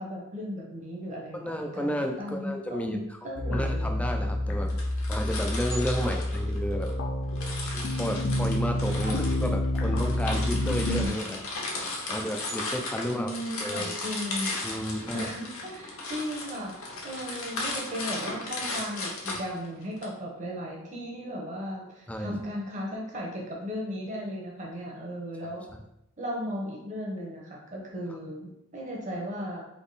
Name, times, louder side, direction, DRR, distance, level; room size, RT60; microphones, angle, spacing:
voice 1, 0.0-4.0 6.0-6.1 9.0-9.2 13.0-14.6 15.1-25.6 26.2-29.6, equal, 35° right, -2 dB, 1.0 m, -36 dB
voice 2, 1.4-4.7 5.1-6.9 7.7-11.4 12.1-13.3 13.6-13.9 14.6-15.3 22.1-22.4 25.4-25.8, equal, 5° left, 3 dB, 0.3 m, -32 dB
sound 1, 3.4-11.1, left 1 dB, 55° left, 0.6 m, -28 dB
sound 2, 4.7-6.9 7.4-20.0, left 2 dB, 70° left, 1.0 m, -36 dB
3.6 x 3.0 x 4.0 m, 0.83 s
head